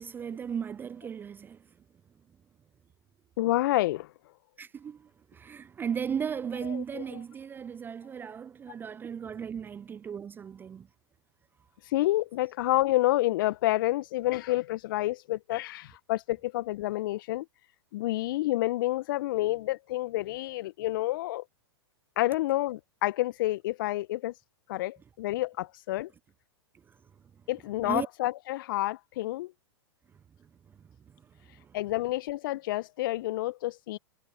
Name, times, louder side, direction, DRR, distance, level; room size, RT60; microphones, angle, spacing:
voice 1, 0.0-1.6 4.6-10.9 27.8-28.1 31.6-31.8, right 7 dB, 15° right, 0.5 m, -36 dB
voice 2, 3.4-4.1 6.5-7.2 11.9-17.4 17.9-21.4 22.2-24.3 24.7-26.1 27.5-29.5 31.7-34.0, left 17 dB, 50° left, 1.7 m, -29 dB
figure-of-eight pair, 105°, 14 cm